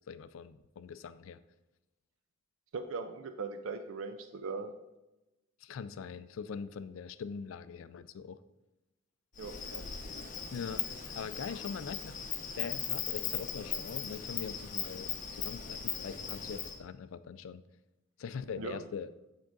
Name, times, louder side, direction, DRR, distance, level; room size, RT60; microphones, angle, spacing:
voice 1, 0.1-1.4 5.6-8.4 10.5-12.2 12.6-17.6 18.2-19.1, left 6 dB, 85° left, 14 dB, 0.4 m, -42 dB
voice 2, 2.7-4.7 9.4-9.8 18.6-18.8, right 4 dB, 90° right, 8 dB, 0.5 m, -39 dB
Insect, 9.4-16.8, left 7 dB, 45° left, 0.9 m, -38 dB
8.7 x 3.7 x 3.9 m, 0.98 s
head